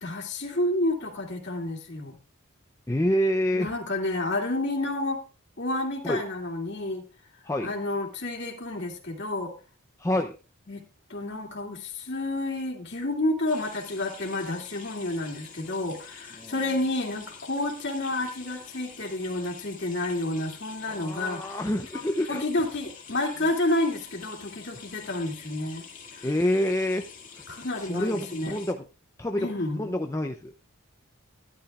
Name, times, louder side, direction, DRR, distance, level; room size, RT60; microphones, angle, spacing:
voice 1, 0.0-2.2 3.5-5.2 5.6-7.0 7.6-9.5 10.7-10.8 11.1-21.4 21.9-22.0 22.3-25.8 26.1-26.3 27.5-28.6 29.4-29.9, left 2 dB, 55° left, 2 dB, 2.5 m, -30 dB
voice 2, 2.9-3.7 6.0-6.2 7.4-7.7 10.0-10.4 16.4-16.5 20.8-22.4 26.2-27.1 27.4-27.5 27.8-28.8 29.2-29.5 29.8-30.5, left 1 dB, 15° left, 5 dB, 0.5 m, -27 dB
sound 1, 13.5-28.7, left 6 dB, 35° left, 2.1 m, -47 dB
13.0 x 11.0 x 2.4 m, 0.34 s
head